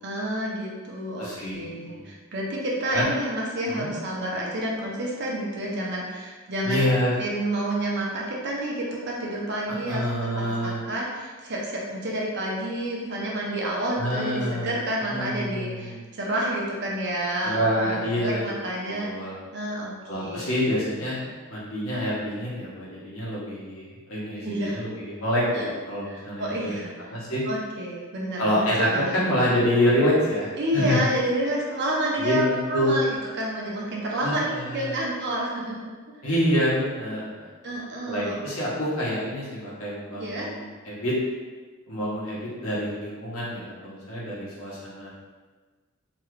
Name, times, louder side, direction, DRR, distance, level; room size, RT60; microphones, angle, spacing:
voice 1, 0.0-6.9 7.2-10.1 10.3-19.1 19.5-20.7 21.2-21.4 24.4-24.8 25.5-25.7 26.0-26.9 27.5-29.2 30.6-33.1 33.4-35.9 37.6-38.8 40.2-40.5, right 1 dB, 55° right, -3 dB, 0.7 m, -29 dB
voice 2, 1.2-2.0 2.9-3.1 3.7-3.9 6.6-7.1 9.9-10.8 14.0-14.7 15.0-15.9 17.4-18.4 18.9-19.3 20.1-21.2 21.5-25.6 25.9-26.7 27.1-27.4 28.4-31.0 32.2-32.9 34.2-34.9 36.2-37.5 38.1-41.1 41.9-45.1, equal, 85° left, -7 dB, 1.1 m, -27 dB
3.0 x 2.4 x 3.1 m, 1.4 s
head